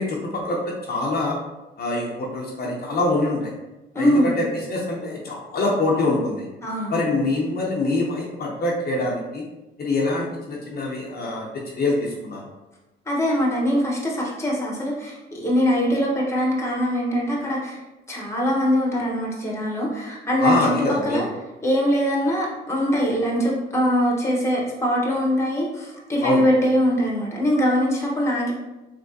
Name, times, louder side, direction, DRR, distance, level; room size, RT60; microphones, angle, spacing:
voice 1, 0.0-1.4 1.8-3.5 4.0-6.5 6.9-9.4 9.8-12.4 20.4-21.3 26.2-26.4, left 2 dB, 50° left, -2 dB, 0.7 m, -25 dB
voice 2, 3.9-4.3 6.6-7.1 13.1-17.8 18.1-21.3 21.6-28.5, equal, 15° left, -3 dB, 1.0 m, -22 dB
3.4 x 2.9 x 2.6 m, 1.0 s
cardioid pair, 90°, 20 cm